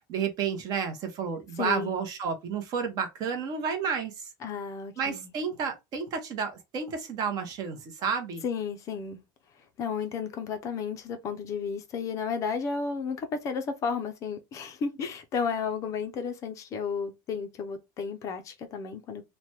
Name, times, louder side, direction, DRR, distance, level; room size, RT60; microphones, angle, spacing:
voice 1, 0.1-4.3 5.0-8.4, right 6 dB, 35° right, 0.8 m, -31 dB
voice 2, 1.6-1.9 4.4-5.3 8.4-9.2 9.8-19.2, left 5 dB, 30° left, 0.5 m, -33 dB
3.2 x 2.1 x 2.8 m
cardioid pair, 165°, 11 cm